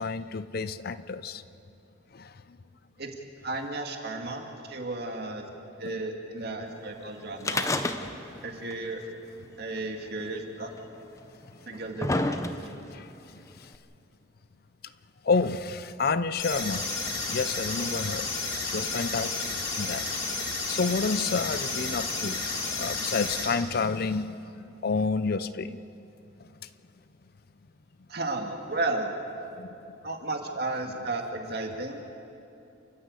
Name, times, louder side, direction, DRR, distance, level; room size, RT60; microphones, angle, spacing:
voice 1, 0.0-1.4 2.1-2.3 5.8-6.0 12.9-13.0 15.2-16.9 17.3-18.3 18.7-20.1 20.7-25.8 29.6-29.7, left 4 dB, 50° left, 14 dB, 0.5 m, -29 dB
voice 2, 3.4-5.5 5.8-7.7 8.4-9.0 9.6-10.7 11.7-12.4 28.1-29.1 30.0-32.0, right 2 dB, 50° right, 2 dB, 2.3 m, -33 dB
sound 1, 7.4-8.4 8.7-8.8 9.8-9.9 10.8-10.9 11.5-12.9 13.7-13.8, left 2 dB, 15° left, 0.8 m, -28 dB
sound 2, 16.4-23.4, left 3 dB, 80° left, 6.3 m, -32 dB
29.0 x 13.5 x 8.3 m, 2.8 s
head